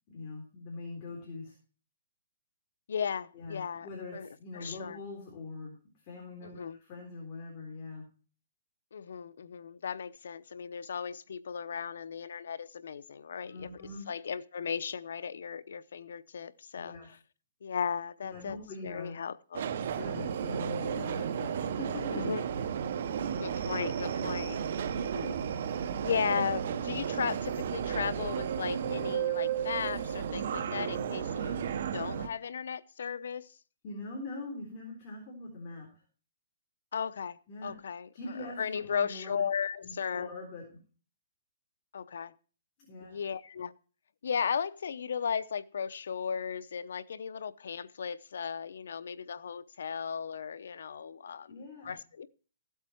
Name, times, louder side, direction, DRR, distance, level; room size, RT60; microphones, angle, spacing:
voice 1, 0.1-1.5 3.3-5.8 6.0-8.0 13.4-14.1 16.7-17.1 18.2-19.1 19.8-22.7 24.1-24.3 24.9-25.9 33.8-35.9 37.5-37.8 38.1-39.4 39.8-40.8 42.9-43.2 51.5-51.9, left 2 dB, 30° left, 3.8 m, -43 dB
voice 2, 2.9-3.9 4.1-4.3 4.5-5.0 6.4-6.8 8.9-13.8 14.1-17.0 17.6-18.6 18.8-19.7 22.2-22.4 23.4-24.6 25.9-31.7 31.9-33.5 36.9-38.1 38.6-40.3 41.9-42.3 43.0-43.7 44.2-51.5 51.8-52.3, left 7 dB, 70° left, 0.7 m, -36 dB
Subway metro underground, 19.5-32.3, right 8 dB, 50° right, 1.0 m, -33 dB
15.0 x 8.1 x 4.5 m
hypercardioid pair, 165°, 0 cm